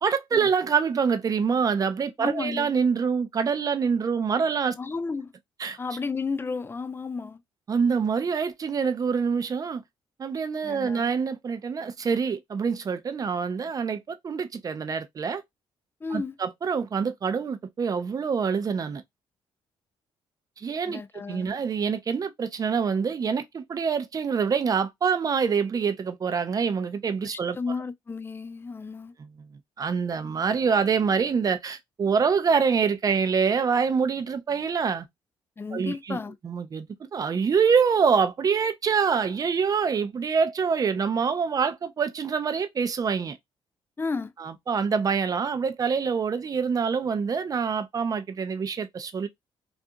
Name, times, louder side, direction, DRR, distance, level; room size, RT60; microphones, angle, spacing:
voice 1, 0.0-4.8 5.6-5.8 7.7-9.8 10.2-15.4 16.1-19.0 20.6-21.0 21.3-27.6 29.2-29.5 29.8-35.1 35.7-36.2 36.4-43.4 44.4-49.3, right 6 dB, 35° right, 0.5 m, -25 dB
voice 2, 2.2-2.7 4.8-5.3 5.8-7.4 10.6-11.1 16.0-16.3 20.9-21.5 27.2-29.1 35.6-36.4 44.0-44.3, left 4 dB, 20° left, 0.3 m, -33 dB
2.4 x 2.4 x 2.6 m
cardioid pair, 90°, 10 cm